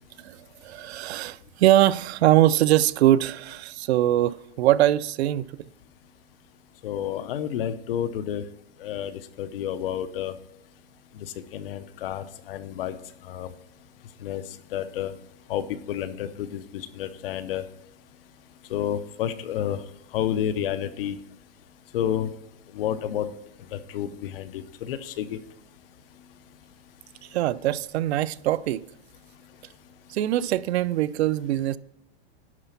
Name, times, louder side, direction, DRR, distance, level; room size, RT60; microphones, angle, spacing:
voice 1, 0.2-5.4 27.3-28.8 30.1-31.8, right 13 dB, 85° right, 0.5 m, -22 dB
voice 2, 6.8-8.4 8.8-10.3 11.5-12.9 13.3-13.5 14.2-14.4 14.7-15.1 15.5-17.6 18.7-19.8 20.1-21.2 21.9-22.3 22.7-23.3 23.7-25.4, left 10 dB, 60° left, 0.7 m, -30 dB
11.0 x 4.0 x 5.8 m
supercardioid pair, 170°, 32 cm